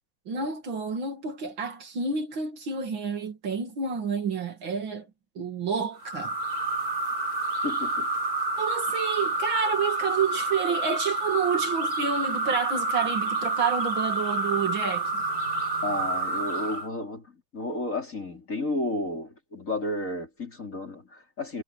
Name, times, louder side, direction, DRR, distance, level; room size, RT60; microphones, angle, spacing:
voice 1, 0.3-5.1 5.4-6.3 8.6-15.2, right 5 dB, 75° right, 3.2 m, -29 dB
sound 1, 6.0-16.9, right 2 dB, 50° right, 4.9 m, -28 dB
voice 2, 7.6-8.1 15.8-17.3 17.5-21.6, left 1 dB, 40° left, 5.0 m, -32 dB
omnidirectional pair, 2.1 m